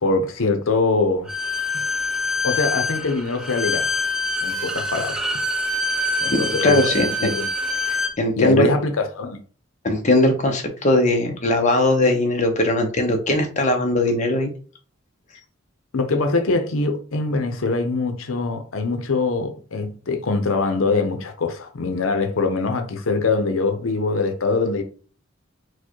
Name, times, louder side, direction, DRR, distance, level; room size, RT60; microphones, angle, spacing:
voice 1, 0.0-1.3 2.4-3.9 4.4-5.2 6.2-7.5 8.4-9.4 15.9-24.8, left 3 dB, 90° left, 0.7 m, -23 dB
Bowed string instrument, 1.3-8.2, left 2 dB, 5° right, 0.4 m, -25 dB
voice 2, 6.3-7.3 7.9-8.7 9.8-14.5, left 1 dB, 35° left, 0.7 m, -20 dB
4.5 x 2.2 x 4.5 m
head